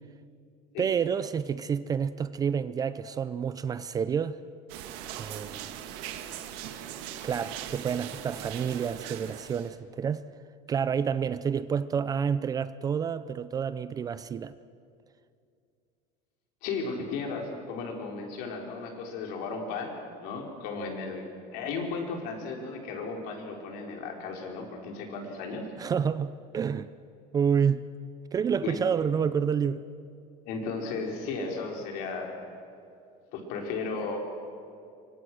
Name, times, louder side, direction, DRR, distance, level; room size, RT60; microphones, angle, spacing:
voice 1, 0.8-4.4 5.2-5.7 7.2-10.3 10.7-14.5 25.8-26.9 27.3-27.8 28.3-29.8, right 7 dB, 20° right, 0.5 m, -29 dB
sound 1, 4.7-9.7, right 10 dB, 70° right, 1.8 m, -40 dB
voice 2, 16.6-19.9 20.2-25.7 28.6-28.8 30.5-32.4 33.3-34.2, left 4 dB, 65° left, 4.7 m, -35 dB
26.0 x 24.5 x 6.3 m
cardioid pair, 165°, 17 cm